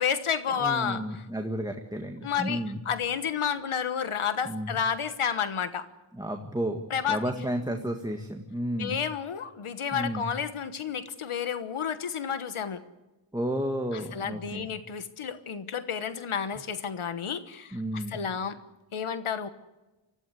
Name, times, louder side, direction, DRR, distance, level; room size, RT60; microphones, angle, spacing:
voice 1, 0.0-1.3 2.2-2.6 2.8-5.9 6.9-7.2 8.8-12.8 13.9-18.6 18.9-19.5, left 7 dB, 90° left, 11 dB, 1.3 m, -31 dB
voice 2, 0.6-2.8 4.5-4.7 6.1-6.8 7.1-9.0 9.9-10.2 13.3-14.7 17.7-18.2, equal, 10° right, 4 dB, 1.8 m, -32 dB
25.0 x 16.0 x 8.1 m, 1.1 s
wide cardioid pair, 100°, 49 cm